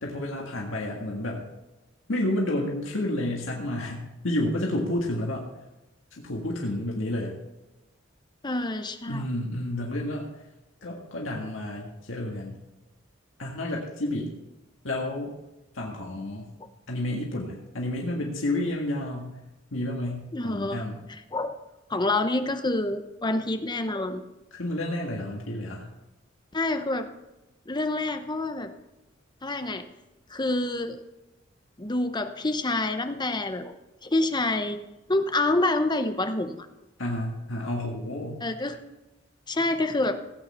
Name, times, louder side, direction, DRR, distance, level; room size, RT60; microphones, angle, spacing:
voice 1, 0.0-1.4 2.1-5.4 6.1-7.4 9.1-10.3 10.8-12.6 13.4-14.3 14.8-15.4 15.7-16.5 16.9-19.3 19.7-21.0 24.5-25.9 37.0-38.4, left 1 dB, 85° left, -1 dB, 1.8 m, -30 dB
voice 2, 8.4-9.2 20.3-20.8 21.3-21.6 21.9-24.2 26.5-27.1 27.7-28.7 29.4-29.8 30.3-31.0 31.8-33.7 34.0-34.8 35.1-36.7 38.4-38.8 39.5-40.2, left 2 dB, 20° left, 8 dB, 0.9 m, -27 dB
16.5 x 8.7 x 4.3 m, 1.0 s
head